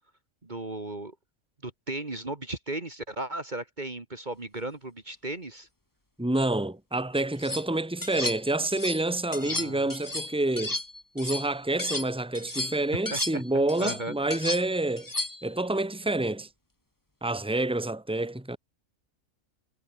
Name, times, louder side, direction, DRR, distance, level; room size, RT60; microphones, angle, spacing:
voice 1, 0.4-1.2 1.6-5.7 9.4-9.9 12.9-14.1, right 2 dB, 35° right, 2.2 m, -36 dB
voice 2, 6.2-10.7 11.1-15.1 15.4-16.5 17.2-18.6, right 2 dB, 5° right, 2.2 m, -28 dB
sound 1, 7.2-7.6 8.0-9.0 9.3-12.1 12.3-15.5, left 2 dB, 15° left, 1.7 m, -34 dB
omnidirectional pair, 1.4 m